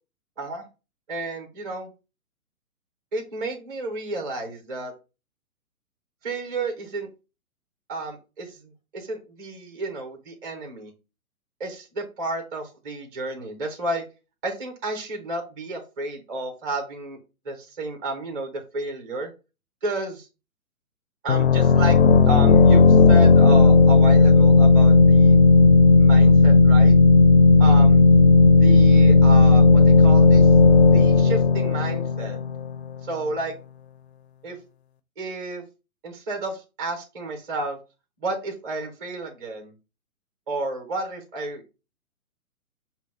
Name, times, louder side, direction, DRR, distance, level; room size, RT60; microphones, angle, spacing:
voice 1, 1.1-1.9 3.1-4.9 6.2-7.1 7.9-8.6 8.9-10.9 11.6-14.0 14.4-17.2 17.4-19.3 19.8-20.3 21.2-22.0 22.3-25.4 26.0-27.0 27.6-28.0 28.6-30.5 30.9-32.4 33.0-33.5 34.4-34.6 35.2-35.6 36.0-37.8 38.2-39.7 40.5-41.6, right 2 dB, 15° right, 4 dB, 0.5 m, -31 dB
sound 1, 21.3-32.8, left 4 dB, 50° left, 0.4 m, -14 dB
5.6 x 2.0 x 4.4 m, 0.30 s
hypercardioid pair, 135°, 44 cm